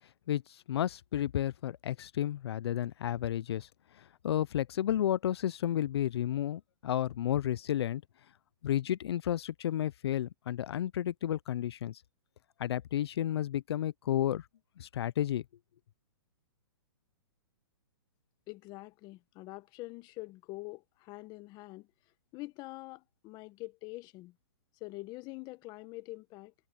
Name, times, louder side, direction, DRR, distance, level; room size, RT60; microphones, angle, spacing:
voice 1, 0.3-3.7 3.9-8.0 8.6-12.0 12.6-14.5 14.8-15.4, left 11 dB, 70° left, 0.5 m, -32 dB
voice 2, 18.5-21.9 22.3-24.4 24.8-26.5, left 21 dB, 30° left, 1.6 m, -45 dB
hypercardioid pair, 140°, 14 cm